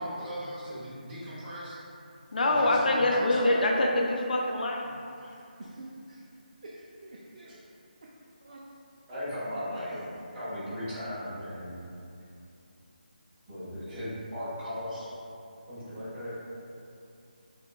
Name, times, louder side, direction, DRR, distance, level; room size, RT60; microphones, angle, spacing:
voice 1, 0.0-1.8 2.4-3.6 9.1-10.0 10.3-11.8 13.5-15.1 15.7-16.3, equal, 15° right, -13 dB, 0.7 m, -37 dB
voice 2, 2.3-5.0, left 1 dB, 60° left, -1 dB, 0.3 m, -25 dB
voice 3, 5.2-6.2 6.6-7.6 8.4-8.6 9.9-10.1, right 2 dB, 45° right, -4 dB, 0.3 m, -47 dB
5.4 x 2.2 x 2.2 m, 2.6 s
figure-of-eight pair, 170°, 5 cm